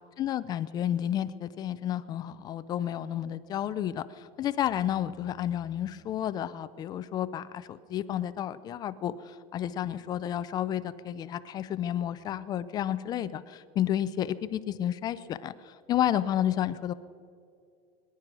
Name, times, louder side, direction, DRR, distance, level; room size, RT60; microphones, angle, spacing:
voice 1, 0.2-16.9, left 11 dB, 20° left, 15 dB, 0.3 m, -31 dB
22.5 x 10.5 x 6.0 m, 2.4 s
supercardioid pair, 170°, 18 cm